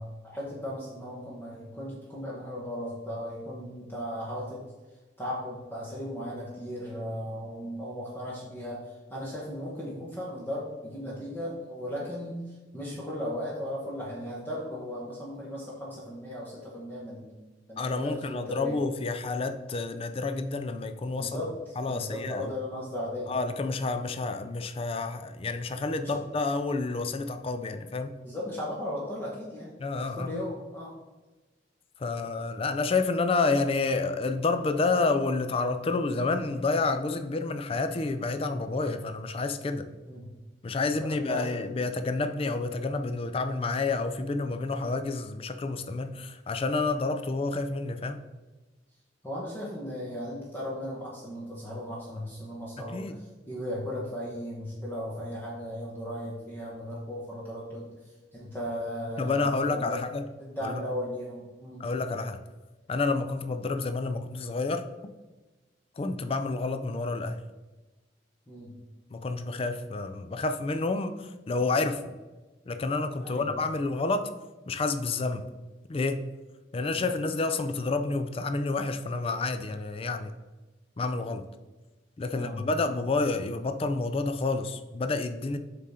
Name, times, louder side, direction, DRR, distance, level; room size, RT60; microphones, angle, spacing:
voice 1, 0.0-4.6 5.2-17.3 17.7-18.8 21.2-23.4 26.0-26.2 28.2-30.9 40.0-40.3 40.8-41.5 49.2-53.0 53.5-60.0 60.4-61.8 68.5-68.8 73.2-73.5 76.8-77.0 82.3-82.7, equal, 10° left, -5 dB, 1.0 m, -36 dB
voice 2, 17.8-21.4 21.8-22.5 23.3-28.2 29.8-30.4 32.0-39.9 40.6-48.2 52.9-53.2 59.2-60.2 60.6-60.8 61.8-62.4 62.9-64.8 66.0-67.4 69.1-72.0 72.7-74.3 74.7-75.5 75.9-76.2 76.7-80.3 81.0-81.4 82.2-85.6, left 3 dB, 30° left, 9 dB, 0.4 m, -29 dB
7.3 x 3.7 x 4.2 m, 1.2 s
head